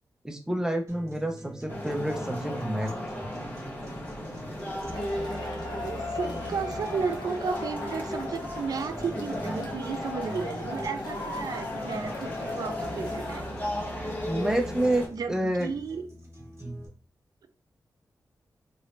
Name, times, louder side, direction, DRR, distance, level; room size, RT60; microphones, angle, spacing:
voice 1, 0.2-3.2 14.3-15.7 16.6-16.8, right 1 dB, 10° right, 2 dB, 0.6 m, -29 dB
sound 1, 0.9-16.9, right 2 dB, 45° right, 1.1 m, -45 dB
sound 2, 1.7-15.1, left 1 dB, 25° left, 0.9 m, -36 dB
Male speech man speaking / Shout / Clapping, 4.9-13.4, left 3 dB, 85° left, 0.9 m, -38 dB
voice 2, 5.8-13.5 15.1-15.3 15.6-16.1, right 5 dB, 65° right, 8 dB, 0.4 m, -33 dB
2.9 x 2.6 x 3.2 m, 0.37 s
wide cardioid pair, 110°, 7 cm